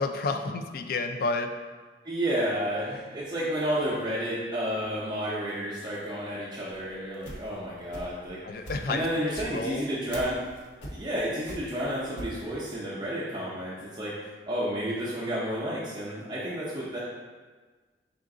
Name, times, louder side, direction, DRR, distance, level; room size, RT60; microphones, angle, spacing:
voice 1, 0.0-1.5 8.4-9.2 9.5-9.9, left 3 dB, 55° left, 6 dB, 0.3 m, -30 dB
voice 2, 2.0-10.4 10.9-14.1 14.5-17.0, equal, 25° right, -7 dB, 0.5 m, -31 dB
sound 1, 6.7-8.3 8.6-12.4, equal, 90° left, 0.7 m, -41 dB
4.6 x 2.5 x 3.6 m, 1.4 s
head